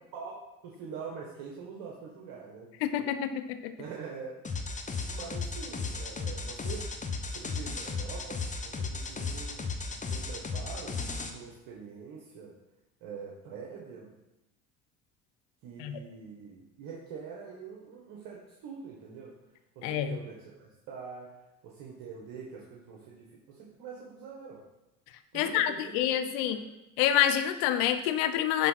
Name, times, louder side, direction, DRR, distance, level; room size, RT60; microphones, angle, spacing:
voice 1, 0.6-3.1 3.8-4.6 5.1-12.5 13.0-14.1 15.6-19.3 19.8-24.6 25.3-26.7, right 5 dB, 70° right, -2 dB, 1.7 m, -45 dB
voice 2, 2.8-3.7 15.8-16.0 19.8-20.2 25.3-26.6 27.0-28.7, left 10 dB, 80° left, 9 dB, 0.8 m, -27 dB
sound 1, 4.4-11.3, left 4 dB, 20° left, 1.0 m, -35 dB
10.5 x 3.8 x 5.8 m, 0.94 s
supercardioid pair, 90°, 36 cm